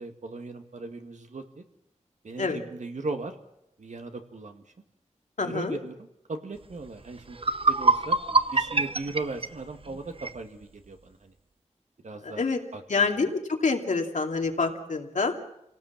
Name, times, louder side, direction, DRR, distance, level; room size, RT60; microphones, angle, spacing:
voice 1, 0.0-1.6 2.2-3.4 3.8-4.6 5.4-7.4 7.7-8.2 8.5-11.3 12.0-12.5 12.7-13.3, right 3 dB, 80° right, 6 dB, 2.1 m, -38 dB
voice 2, 5.4-5.8 12.2-12.6 12.9-15.3, left 4 dB, 85° left, 3 dB, 2.5 m, -27 dB
sound 1, 6.9-7.0 7.3-10.4, right 3 dB, 50° right, 0.8 m, -25 dB
27.5 x 18.0 x 7.4 m, 0.84 s
wide cardioid pair, 80°, 12 cm